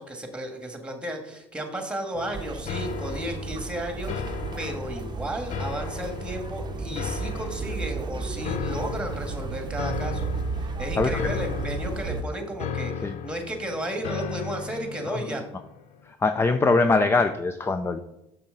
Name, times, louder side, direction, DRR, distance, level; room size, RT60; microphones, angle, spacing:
voice 1, 0.0-10.3 10.6-15.4, right 1 dB, 5° right, 4 dB, 1.8 m, -33 dB
sound 1, 2.1-16.1, left 8 dB, 55° left, 0.7 m, -36 dB
sound 2, 2.3-12.2, right 4 dB, 30° right, 0.8 m, -33 dB
voice 2, 11.0-11.3 13.0-13.2 15.1-15.3 16.0-18.0, left 3 dB, 15° left, 9 dB, 0.5 m, -23 dB
6.8 x 6.2 x 3.9 m, 0.85 s
supercardioid pair, 80°, 14 cm